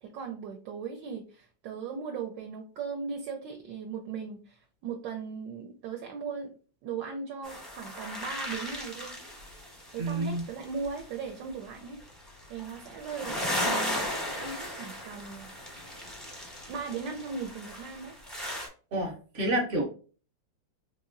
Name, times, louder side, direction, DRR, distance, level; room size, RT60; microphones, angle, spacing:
voice 1, 0.0-6.5 6.8-9.2 9.9-12.0 12.5-15.5 16.7-18.1, right 5 dB, 75° right, 4 dB, 1.2 m, -38 dB
sound 1, 7.4-11.2 11.9-18.7, left 1 dB, ahead, 0.4 m, -36 dB
voice 2, 10.0-10.4 18.9-19.8, right 1 dB, 50° right, 2 dB, 0.9 m, -29 dB
4.2 x 2.9 x 2.5 m, 0.38 s
omnidirectional pair, 2.1 m